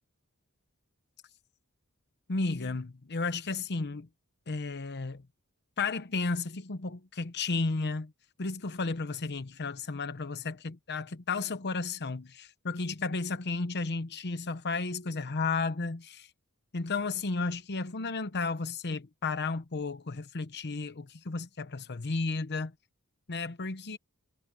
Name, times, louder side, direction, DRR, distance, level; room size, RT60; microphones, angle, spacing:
voice 1, 2.3-4.1 4.5-5.2 5.8-8.1 8.4-16.3 16.7-22.7 23.3-24.0, left 3 dB, 50° left, 0.9 m, -33 dB
head